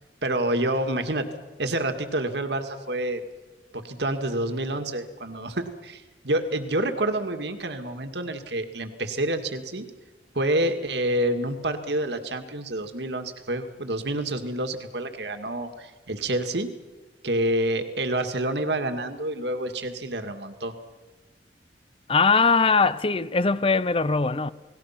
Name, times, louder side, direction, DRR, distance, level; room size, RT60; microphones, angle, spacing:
voice 1, 0.2-1.3 1.6-3.2 3.7-9.9 10.4-16.7 17.2-20.7, right 1 dB, 65° right, 2.1 m, -28 dB
voice 2, 22.1-24.5, left 4 dB, 30° left, 0.7 m, -21 dB
30.0 x 19.5 x 5.9 m
head